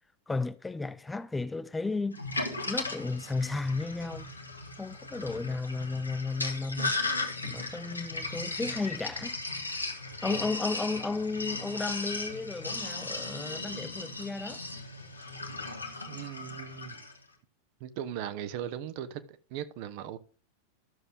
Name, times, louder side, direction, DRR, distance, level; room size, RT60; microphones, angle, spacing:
voice 1, 0.3-2.2 2.7-4.3 4.8-7.0 7.4-9.4 10.2-14.6, left 3 dB, 10° left, 0.4 m, -33 dB
Sink (filling or washing), 2.1-17.2, left 2 dB, 80° left, 1.3 m, -37 dB
voice 2, 16.1-17.0 17.8-20.2, right 10 dB, 45° right, 0.8 m, -38 dB
12.5 x 6.7 x 3.5 m
figure-of-eight pair, 90°, 0 cm